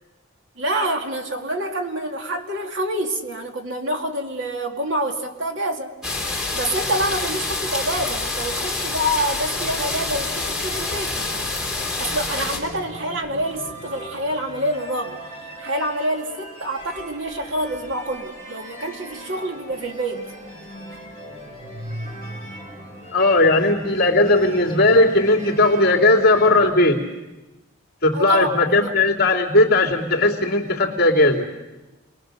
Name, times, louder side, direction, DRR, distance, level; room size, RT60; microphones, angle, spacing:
voice 1, 0.6-5.9 6.5-11.5 12.0-15.2 15.6-20.3 28.1-28.9, right 1 dB, 60° right, 3 dB, 2.4 m, -27 dB
sound 1, 6.0-12.6, left 3 dB, 5° right, 3.9 m, -27 dB
sound 2, 9.8-26.7, right 1 dB, 35° right, 6.0 m, -39 dB
voice 2, 23.1-27.0 28.0-31.5, left 2 dB, 45° left, 0 dB, 2.9 m, -17 dB
28.5 x 21.0 x 6.7 m, 1.0 s
head